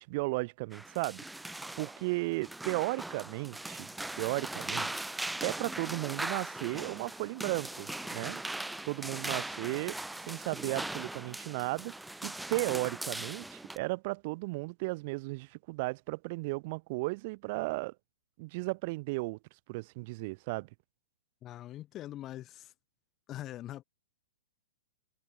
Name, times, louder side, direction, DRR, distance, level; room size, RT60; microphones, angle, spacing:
voice 1, 0.0-3.9 4.2-5.0 5.4-8.4 8.9-10.0 10.2-11.9 12.2-17.9 18.4-19.4 19.7-20.7, right 25 dB, 45° right, 0.7 m, -35 dB
sound 1, 0.7-13.8, right 2 dB, 5° right, 1.2 m, -39 dB
voice 2, 21.4-22.7 23.3-23.8, left 13 dB, 25° left, 0.7 m, -42 dB
hypercardioid pair, 140°, 0 cm